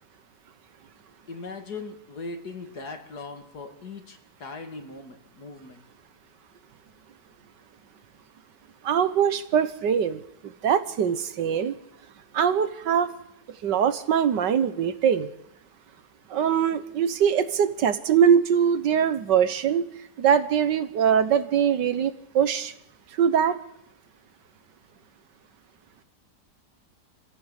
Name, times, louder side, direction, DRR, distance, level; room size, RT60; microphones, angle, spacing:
voice 1, 1.3-5.8, left 3 dB, 65° left, 6 dB, 2.8 m, -39 dB
voice 2, 8.8-11.8 12.3-13.1 13.6-15.3 16.3-19.8 20.2-22.7 23.2-23.6, right 8 dB, 85° right, 13 dB, 1.8 m, -22 dB
26.0 x 15.0 x 8.3 m, 0.81 s
omnidirectional pair, 1.8 m